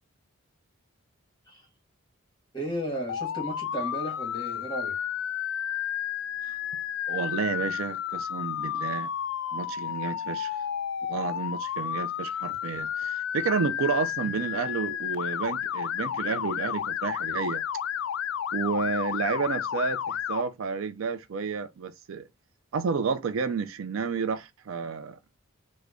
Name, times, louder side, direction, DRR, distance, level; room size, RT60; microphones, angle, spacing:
voice 1, 2.5-4.9, equal, 20° left, 1.4 m, -34 dB
Motor vehicle (road) / Siren, 3.1-20.4, left 9 dB, 65° left, 0.3 m, -32 dB
voice 2, 7.1-9.1 9.5-10.5 11.1-17.6 18.5-22.3 22.7-25.2, right 5 dB, 70° right, 0.4 m, -31 dB
3.3 x 2.1 x 3.5 m
head